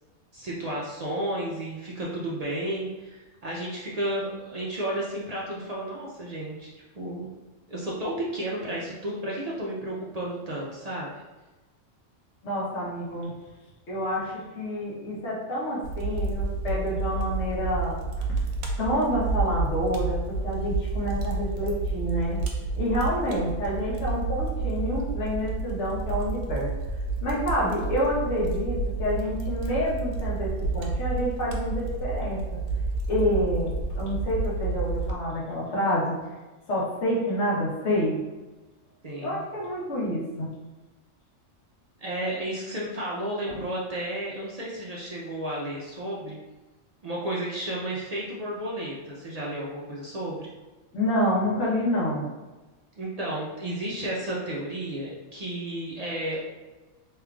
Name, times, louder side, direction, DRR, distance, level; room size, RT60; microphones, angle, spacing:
voice 1, 0.3-7.3 7.7-11.1 39.0-39.4 42.0-46.4 47.0-50.5 53.0-56.4, right 1 dB, 60° right, -5 dB, 0.4 m, -32 dB
voice 2, 12.4-13.3 13.9-18.0 18.8-22.4 22.8-26.7 27.2-32.6 33.1-36.2 36.7-38.2 39.2-40.5 43.5-43.6 50.9-52.3, equal, 65° left, -6 dB, 1.3 m, -28 dB
Fire, 15.8-35.1, right 3 dB, 80° right, 1.0 m, -30 dB
3.6 x 3.2 x 2.3 m, 1.2 s
omnidirectional pair, 1.3 m